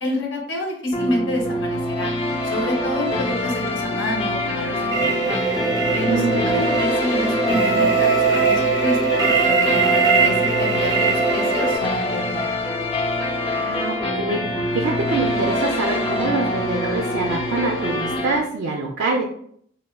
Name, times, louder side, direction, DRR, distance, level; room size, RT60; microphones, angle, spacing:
voice 1, 0.0-2.1 2.4-5.4 5.9-12.4, left 1 dB, 70° left, 0 dB, 0.8 m, -28 dB
sound 1, 0.9-18.4, left 1 dB, 30° left, 0.5 m, -25 dB
sound 2, 4.9-11.8, right 5 dB, 20° right, 0.5 m, -20 dB
voice 2, 6.0-6.5 13.5-19.2, right 3 dB, 80° right, 0 dB, 0.4 m, -25 dB
3.4 x 2.1 x 2.3 m, 0.65 s
head